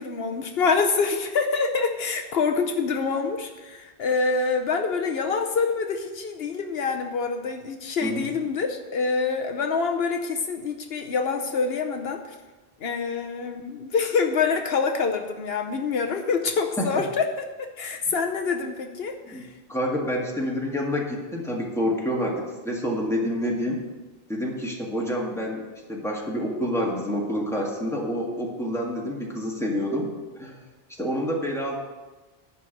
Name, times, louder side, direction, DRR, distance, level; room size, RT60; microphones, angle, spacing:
voice 1, 0.0-12.3 12.8-17.4 17.8-19.5, left 5 dB, 75° left, 5 dB, 1.0 m, -26 dB
voice 2, 19.7-23.8 24.3-30.6 31.0-31.8, equal, 5° left, -2 dB, 1.7 m, -28 dB
11.0 x 4.6 x 8.0 m, 1.2 s
omnidirectional pair, 1.0 m